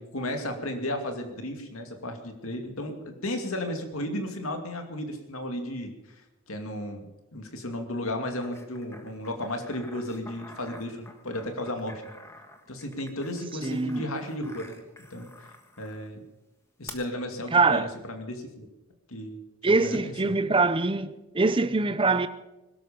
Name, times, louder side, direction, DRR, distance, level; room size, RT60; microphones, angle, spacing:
voice 1, 0.0-12.1 12.7-14.8 15.1-16.2 16.8-18.7 19.1-20.3, left 1 dB, 70° left, 2.5 m, -34 dB
sound 1, 8.4-16.1 16.9-17.0, left 2 dB, 10° left, 1.5 m, -49 dB
voice 2, 13.6-14.1 17.5-17.9 19.6-22.3, right 3 dB, 25° right, 0.7 m, -23 dB
21.5 x 12.5 x 5.3 m
head